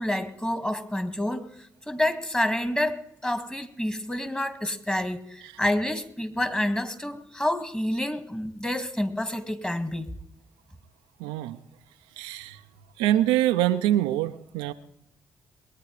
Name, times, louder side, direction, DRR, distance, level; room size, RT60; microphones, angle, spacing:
voice 1, 0.0-1.5 1.9-10.1, left 1 dB, 10° left, 9 dB, 2.5 m, -28 dB
voice 2, 11.2-11.6 12.2-12.6 13.0-14.7, right 13 dB, 85° right, 8 dB, 0.7 m, -24 dB
22.0 x 9.3 x 5.0 m, 0.77 s
hypercardioid pair, 45°, 8 cm